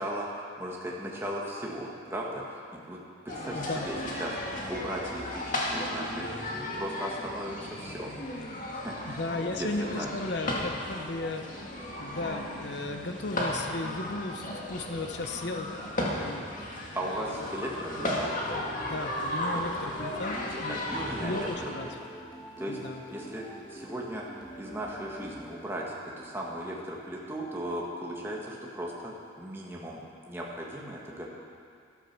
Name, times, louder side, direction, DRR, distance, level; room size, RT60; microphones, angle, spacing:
voice 1, 0.0-3.0 3.3-8.1 8.7-9.7 10.0-10.1 17.0-18.3 20.2-20.4 20.7-21.9 22.6-22.8 23.1-23.4 23.7-30.0 30.3-31.3, right 1 dB, 10° right, -3 dB, 1.7 m, -37 dB
sound 1, 3.3-21.7, left 1 dB, 40° left, 2.0 m, -35 dB
voice 2, 3.5-3.9 9.1-11.7 12.0-15.7 16.1-17.5 18.8-20.8 21.2-21.9 22.7-23.0, left 2 dB, 55° left, 5 dB, 0.9 m, -35 dB
sound 2, 17.1-26.0, equal, 20° left, 1.6 m, -46 dB
14.0 x 13.0 x 6.1 m, 2.3 s
head